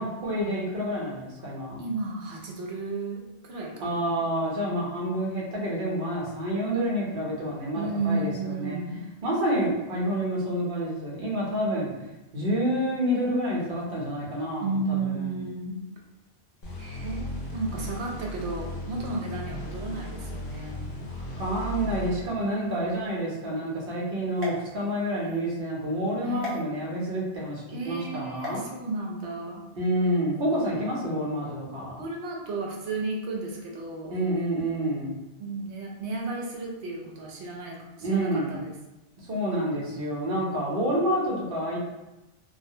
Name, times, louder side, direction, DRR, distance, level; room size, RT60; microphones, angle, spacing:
voice 1, 0.0-1.8 3.8-8.8 9.2-11.9 12.3-15.4 21.1-28.6 29.7-32.0 34.1-35.2 38.0-38.6 39.3-41.8, equal, 60° right, -4 dB, 0.9 m, -28 dB
voice 2, 1.8-4.3 7.7-9.0 14.6-15.8 16.8-20.8 26.2-26.7 27.7-29.6 32.0-34.2 35.4-38.7, right 3 dB, 90° right, -1 dB, 0.9 m, -33 dB
sound 1, 16.6-23.1, left 1 dB, 60° left, 0.7 m, -37 dB
sound 2, 24.3-25.4 26.4-26.6 28.4-28.6, left 2 dB, 40° right, 0.5 m, -37 dB
2.3 x 2.1 x 2.6 m, 0.98 s
omnidirectional pair, 1.1 m